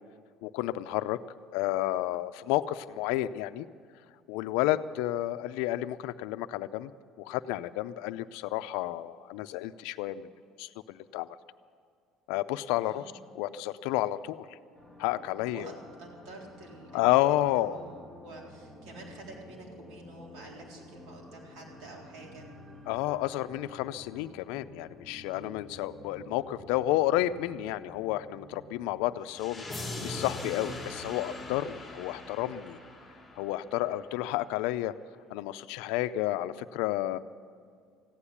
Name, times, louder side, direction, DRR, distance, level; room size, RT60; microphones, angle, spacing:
voice 1, 0.4-1.2 1.5-3.7 4.3-6.9 7.2-10.3 10.6-11.3 12.3-14.5 15.0-15.8 16.9-17.8 22.9-32.8 33.4-34.9 35.3-37.2, left 15 dB, 85° left, 14 dB, 0.5 m, -31 dB
voice 2, 12.8-13.2 15.5-22.5, right 2 dB, 75° right, -2 dB, 3.8 m, -48 dB
sound 1, 14.7-31.2, left 1 dB, 20° right, 1.7 m, -52 dB
sound 2, 29.3-34.2, left 2 dB, 5° left, 2.5 m, -41 dB
15.5 x 9.9 x 8.6 m, 2.2 s
cardioid pair, 150°, 0 cm